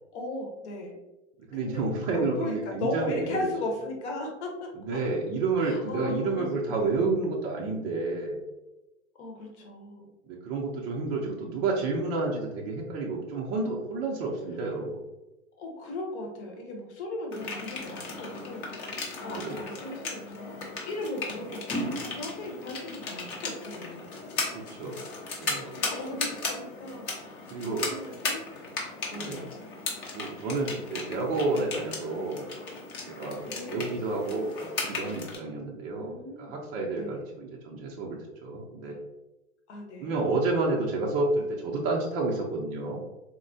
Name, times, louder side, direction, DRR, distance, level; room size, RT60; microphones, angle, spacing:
voice 1, 0.1-1.0 1.5-5.0 5.6-7.3 9.1-10.1 15.6-20.6 20.8-24.1 25.6-28.4 29.1-29.5 30.7-30.8 33.4-33.9 35.9-36.6 36.9-37.3 38.8-39.0 39.7-40.1, left 1 dB, 60° left, 1 dB, 1.0 m, -37 dB
voice 2, 1.5-3.4 4.9-8.4 10.3-15.0 19.3-19.6 24.5-25.0 25.4-25.7 27.5-27.9 29.1-29.4 30.1-32.4 33.1-36.1 36.4-39.0 40.0-43.0, right 3 dB, 30° right, -2 dB, 0.4 m, -30 dB
sound 1, 17.3-35.4, left 3 dB, 30° left, 0.7 m, -36 dB
3.6 x 2.0 x 2.5 m, 1.0 s
hypercardioid pair, 120°, 38 cm